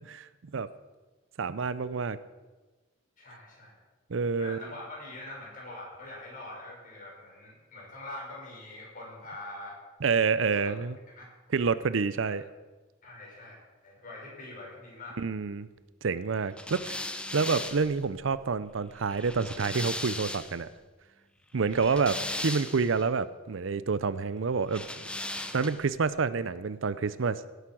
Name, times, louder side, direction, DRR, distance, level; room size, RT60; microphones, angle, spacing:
voice 1, 0.1-0.7 1.4-2.2 4.1-4.6 10.0-11.0 11.5-12.4 15.2-15.7 16.0-17.1 17.3-20.7 21.5-22.1 22.4-24.9 25.5-27.4, right 5 dB, 70° right, 16 dB, 0.6 m, -28 dB
voice 2, 3.2-3.8 4.4-9.8 10.5-10.7 11.1-11.3 12.3-12.4 13.0-15.2 21.9-22.2, left 2 dB, 45° left, -3 dB, 5.9 m, -44 dB
sound 1, 16.6-20.7 21.6-23.0 24.7-25.9, left 1 dB, 5° left, 0.8 m, -38 dB
17.5 x 8.2 x 6.2 m, 1.2 s
head